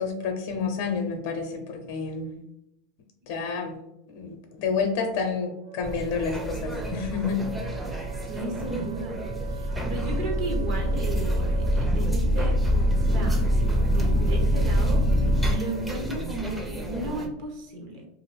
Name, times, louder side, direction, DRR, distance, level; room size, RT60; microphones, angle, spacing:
voice 1, 0.0-2.4 3.3-3.7 4.1-7.4, left 5 dB, 65° left, 4 dB, 0.5 m, -29 dB
Wind instrument woodwind instrument, 5.2-16.1, right 9 dB, 85° right, 0.6 m, -44 dB
sound 1, 5.8-17.3, right 1 dB, 10° right, 0.5 m, -34 dB
voice 2, 8.2-13.5 13.9-18.1, right 2 dB, 60° right, 1 dB, 0.9 m, -35 dB
sound 2, 9.2-15.5, equal, 35° right, 0.9 m, -24 dB
2.5 x 2.5 x 3.2 m, 0.84 s
hypercardioid pair, 110°, 0 cm